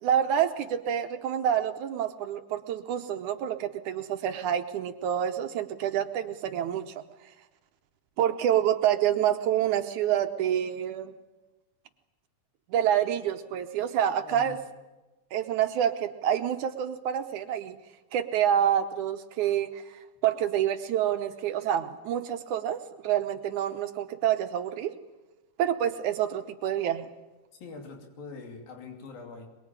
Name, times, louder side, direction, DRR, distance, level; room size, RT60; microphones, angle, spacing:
voice 1, 0.0-6.9 8.2-11.1 12.7-14.6 15.3-17.8 18.1-24.9 25.6-27.1, right 10 dB, 70° right, 8 dB, 2.1 m, -27 dB
voice 2, 27.6-29.5, left 4 dB, 85° left, 3 dB, 4.7 m, -43 dB
23.0 x 22.5 x 8.8 m, 1.1 s
omnidirectional pair, 4.0 m